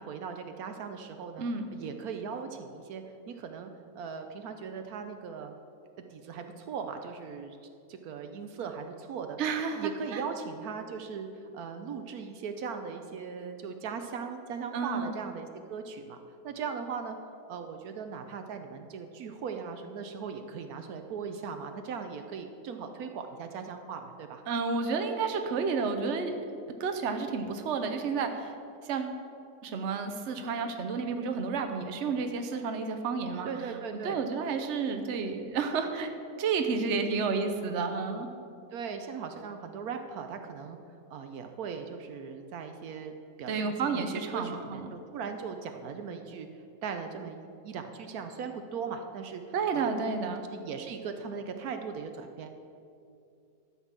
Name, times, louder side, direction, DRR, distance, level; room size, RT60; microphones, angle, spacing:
voice 1, 0.0-1.4 1.7-5.5 6.1-7.6 7.9-9.4 9.7-17.2 17.5-24.4 33.4-34.2 38.7-40.8 41.1-50.0 50.5-52.5, right 6 dB, 75° right, 6 dB, 1.2 m, -39 dB
voice 2, 9.4-10.2 14.7-15.1 24.5-26.3 26.8-28.5 28.8-29.2 29.6-33.5 34.0-36.1 36.4-38.3 43.5-44.9 49.5-50.4, right 5 dB, 55° right, 6 dB, 1.1 m, -31 dB
12.5 x 5.8 x 7.4 m, 2.6 s
omnidirectional pair, 1.6 m